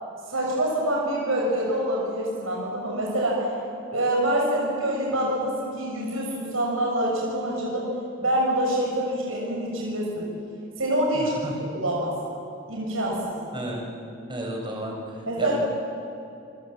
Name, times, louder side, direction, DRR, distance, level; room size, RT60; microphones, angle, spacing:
voice 1, 0.3-3.5 3.9-7.9 8.2-10.3 10.8-11.3 11.7-12.1 12.7-13.4 15.3-15.6, right 1 dB, 80° right, -3 dB, 6.1 m, -26 dB
voice 2, 11.1-11.7 13.5-13.9 14.3-15.5, right 1 dB, 25° right, 0 dB, 5.5 m, -33 dB
27.0 x 26.5 x 7.5 m, 2.6 s
head